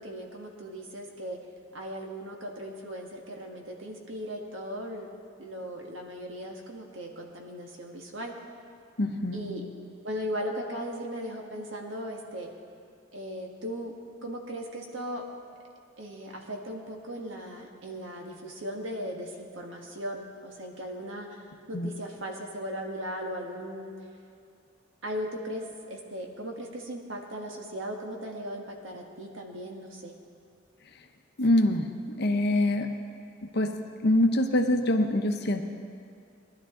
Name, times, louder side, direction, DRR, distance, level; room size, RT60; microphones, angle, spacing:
voice 1, 0.0-1.4 1.7-5.1 5.4-8.3 9.3-9.6 10.0-12.5 13.1-13.9 14.2-15.2 16.0-21.4 21.7-23.9 25.0-30.1, equal, 75° right, 1 dB, 1.6 m, -37 dB
voice 2, 9.0-9.5 21.7-21.9 31.4-31.9 32.2-32.9 33.5-33.7 34.0-35.6, left 1 dB, 60° left, 5 dB, 0.9 m, -24 dB
18.5 x 11.5 x 3.8 m, 2.4 s
head